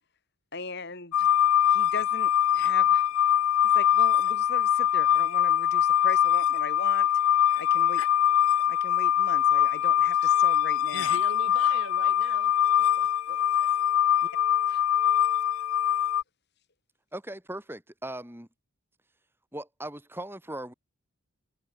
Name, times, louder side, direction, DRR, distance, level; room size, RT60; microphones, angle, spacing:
voice 1, 0.5-1.3 1.7-3.1 3.7-7.1 7.6-8.0 8.7-11.2 14.2-14.3 14.7-14.8, left 3 dB, 50° left, 2.7 m, -39 dB
sound 1, 1.1-16.2, left 10 dB, 70° left, 0.3 m, -23 dB
voice 2, 10.9-12.5 13.0-13.4, right 2 dB, 55° right, 7.5 m, -41 dB
voice 3, 17.1-18.5 19.5-20.7, right 1 dB, 10° right, 4.4 m, -38 dB
head